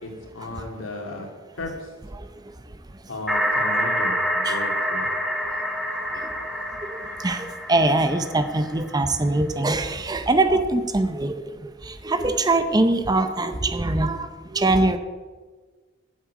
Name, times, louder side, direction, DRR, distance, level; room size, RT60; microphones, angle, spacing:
voice 1, 0.0-1.9 3.1-5.1, left 2 dB, 75° left, 1 dB, 2.6 m, -35 dB
sound 1, 3.3-9.0, equal, ahead, 1.2 m, -27 dB
voice 2, 7.2-11.4 11.9-14.3 14.5-15.0, right 2 dB, 20° right, 9 dB, 0.6 m, -22 dB
9.6 x 7.4 x 8.3 m, 1.4 s
head